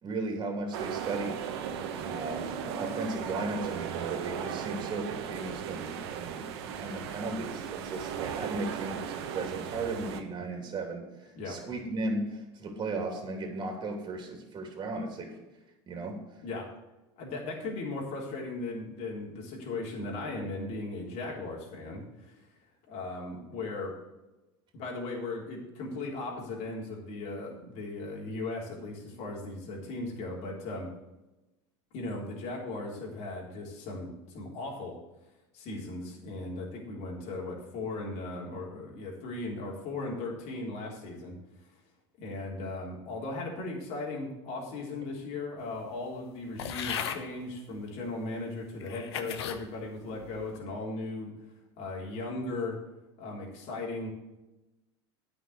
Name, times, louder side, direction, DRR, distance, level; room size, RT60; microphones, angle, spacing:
voice 1, 0.0-1.4 2.0-15.4 15.9-16.2, right 2 dB, 35° right, 3 dB, 3.0 m, -36 dB
sound 1, 0.7-10.2, right 8 dB, 75° right, 1.1 m, -36 dB
voice 2, 17.2-22.4 22.9-23.9 24.7-30.9 31.9-35.0 35.5-41.4 42.2-51.3 51.8-52.8 53.2-54.1, left 2 dB, 55° left, -2 dB, 3.5 m, -37 dB
sound 2, 46.6-47.2 48.0-48.1 48.8-49.6 50.2-50.6, left 8 dB, 85° left, 1.0 m, -36 dB
9.3 x 6.1 x 7.9 m, 1.0 s
supercardioid pair, 100°, 13 cm